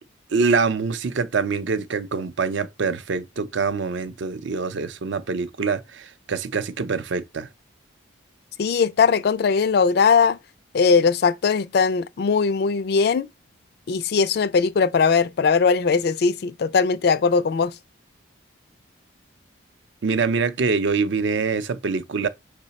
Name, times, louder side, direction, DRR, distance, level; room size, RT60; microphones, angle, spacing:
voice 1, 0.3-7.5 20.0-22.3, right 4 dB, 65° right, 0.5 m, -24 dB
voice 2, 8.6-10.4 10.7-13.3 13.9-17.7, left 5 dB, 50° left, 0.3 m, -20 dB
5.6 x 2.1 x 4.0 m
head